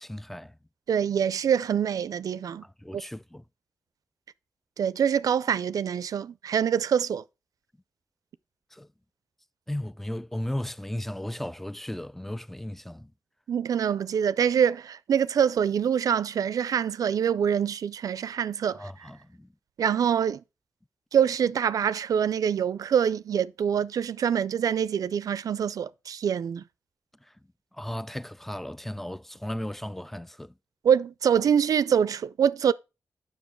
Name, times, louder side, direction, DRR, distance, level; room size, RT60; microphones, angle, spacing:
voice 1, 0.0-0.6 2.6-3.4 8.7-8.9 9.7-13.1 18.7-19.5 27.2-27.3 27.7-30.5, left 1 dB, 5° left, 0.3 m, -36 dB
voice 2, 0.9-2.6 2.9-3.0 4.8-7.2 13.5-18.9 19.8-20.4 21.1-26.6 30.8-32.7, right 8 dB, 75° right, 0.4 m, -25 dB
7.1 x 5.9 x 4.5 m
cardioid pair, 50°, 6 cm